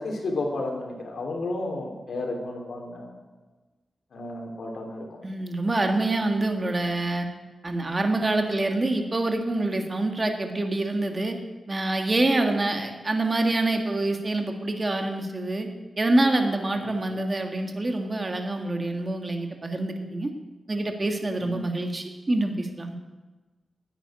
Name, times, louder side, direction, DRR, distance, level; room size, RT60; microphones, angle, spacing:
voice 1, 0.0-3.2 4.1-5.2 16.7-17.0 21.4-21.6, left 2 dB, 75° left, 1 dB, 3.2 m, -32 dB
voice 2, 5.2-7.3 7.6-11.3 11.7-15.7 16.0-20.3 20.7-22.9, right 2 dB, 30° right, 4 dB, 1.6 m, -26 dB
10.0 x 9.1 x 9.6 m, 1.2 s
wide cardioid pair, 100°, 0 cm